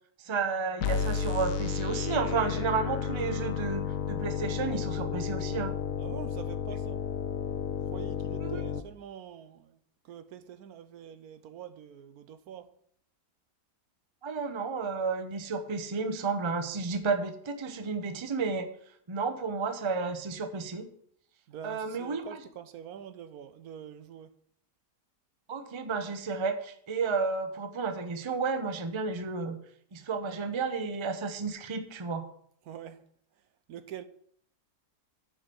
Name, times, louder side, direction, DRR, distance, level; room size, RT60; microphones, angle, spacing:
voice 1, 0.2-5.7 8.4-8.6 14.2-18.7 19.1-20.9 21.6-22.4 25.5-29.6 29.9-32.3, right 4 dB, 30° right, 0.6 m, -32 dB
sound 1, 0.8-8.8, left 7 dB, 65° left, 0.9 m, -32 dB
voice 2, 6.0-7.0 7.9-9.8 10.0-12.7 21.5-24.3 32.7-33.1 33.7-34.0, right 9 dB, 70° right, 1.1 m, -45 dB
8.2 x 5.2 x 7.6 m
omnidirectional pair, 1.7 m